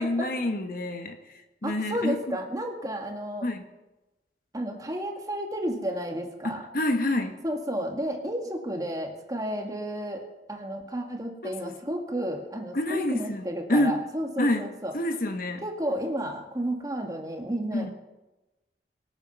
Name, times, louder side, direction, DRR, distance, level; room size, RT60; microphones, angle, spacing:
voice 1, 0.0-2.2 3.4-3.6 6.4-7.4 11.4-11.7 12.7-13.4 13.7-14.0 14.4-14.7 14.9-15.6 17.7-17.9, left 1 dB, 50° left, 6 dB, 1.4 m, -27 dB
voice 2, 1.6-3.5 4.5-6.6 7.4-14.9 15.6-17.9, right 1 dB, 20° right, 3 dB, 2.0 m, -32 dB
24.0 x 8.9 x 5.5 m, 1.1 s
head